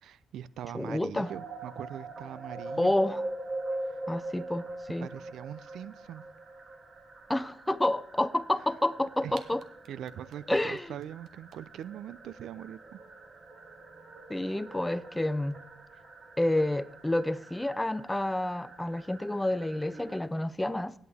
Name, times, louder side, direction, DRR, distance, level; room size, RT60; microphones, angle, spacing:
voice 1, 0.0-2.9 3.8-4.0 5.0-6.2 9.2-9.4 9.9-13.0, right 10 dB, 75° right, 19 dB, 0.4 m, -42 dB
voice 2, 0.7-1.3 2.8-3.2 4.1-5.1 7.3-9.6 10.5-10.9 14.3-15.6 16.4-20.9, left 1 dB, 5° left, 15 dB, 0.3 m, -29 dB
sound 1, 1.2-20.2, right 2 dB, 25° right, 1.1 m, -43 dB
sound 2, 9.3-11.8, right 6 dB, 60° right, 0.9 m, -52 dB
16.5 x 8.8 x 3.5 m, 0.68 s
cardioid pair, 180°, 0 cm